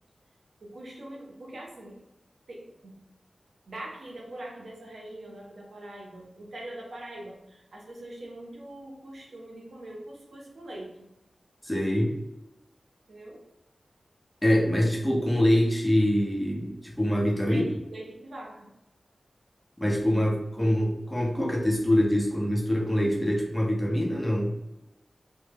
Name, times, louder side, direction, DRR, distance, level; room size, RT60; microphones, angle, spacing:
voice 1, 0.6-2.0 2.5-3.0 3.7-11.1 13.1-13.4 17.4-18.7, right 1 dB, 80° right, -1 dB, 0.6 m, -42 dB
voice 2, 11.6-12.1 14.4-17.7 19.8-24.5, equal, 5° left, -2 dB, 0.7 m, -24 dB
2.1 x 2.0 x 3.3 m, 0.88 s
cardioid pair, 45°, 0 cm